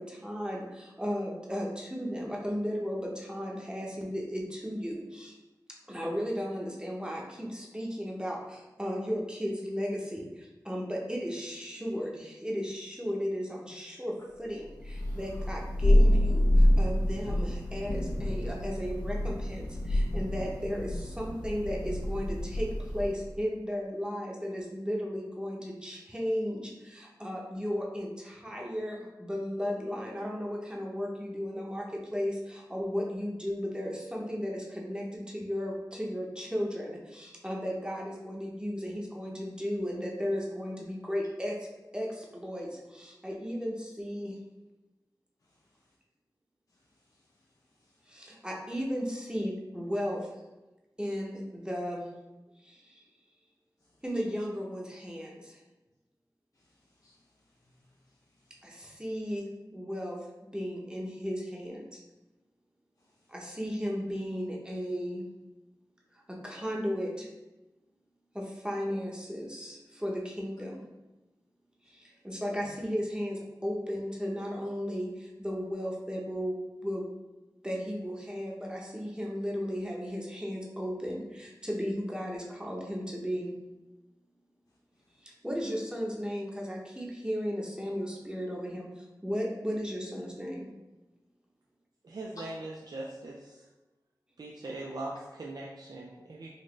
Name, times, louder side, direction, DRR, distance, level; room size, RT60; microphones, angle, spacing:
voice 1, 0.0-5.3 5.9-41.6 41.9-44.4 48.1-50.3 51.0-52.1 52.6-53.0 54.0-55.6 58.6-60.2 60.5-61.8 63.3-65.2 66.3-67.3 68.3-70.9 71.9-77.1 77.6-83.6 85.2-90.7, equal, 10° right, -2 dB, 0.8 m, -35 dB
Thunder, 14.8-23.2, left 1 dB, 70° left, 1.0 m, -27 dB
voice 2, 45.4-46.0 46.7-48.2 53.8-54.0 56.5-58.7 63.0-63.3, left 1 dB, 50° left, -2 dB, 0.4 m, -70 dB
voice 3, 92.0-93.7 94.4-96.5, right 2 dB, 65° right, -2 dB, 0.4 m, -40 dB
4.0 x 2.5 x 3.1 m, 1.1 s
wide cardioid pair, 50°, 7 cm